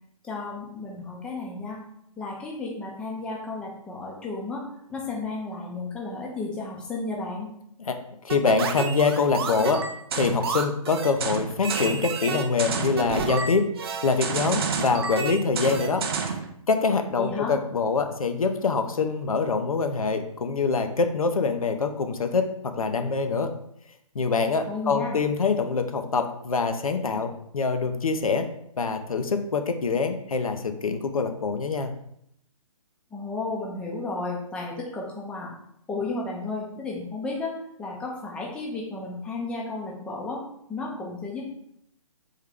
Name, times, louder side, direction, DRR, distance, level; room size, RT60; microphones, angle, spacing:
voice 1, 0.2-1.8 2.2-4.6 4.9-7.5 17.2-17.5 24.7-25.2 33.1-35.5 35.9-37.5 37.8-40.4 40.7-41.5, left 3 dB, 5° left, -3 dB, 0.5 m, -33 dB
voice 2, 8.2-9.8 10.1-13.6 14.0-16.0 16.7-23.5 24.1-28.5 28.8-31.9, left 4 dB, 75° left, 6 dB, 0.6 m, -25 dB
sound 1, 8.3-16.5, right 5 dB, 45° right, 0.5 m, -29 dB
3.6 x 3.1 x 3.5 m, 0.73 s
figure-of-eight pair, 135°, 18 cm